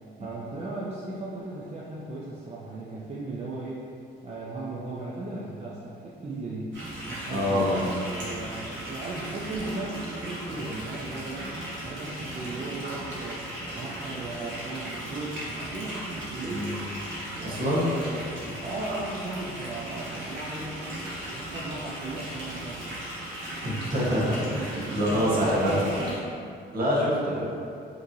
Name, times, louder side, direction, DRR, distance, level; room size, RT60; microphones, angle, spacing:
voice 1, 0.2-3.9 4.2-6.7 7.1-11.5 11.8-13.5 13.7-16.7 17.4-18.3 18.6-20.9 21.3-22.9 24.3-26.2, right 2 dB, 35° right, -6 dB, 0.6 m, -36 dB
sound 1, 6.7-26.2, right 1 dB, 70° right, 1.4 m, -37 dB
voice 2, 7.3-8.0 16.4-16.8 17.4-18.0 23.6-25.7 26.7-27.5, equal, 50° right, -6 dB, 1.3 m, -26 dB
5.0 x 3.1 x 2.6 m, 2.5 s
cardioid pair, 90°, 20 cm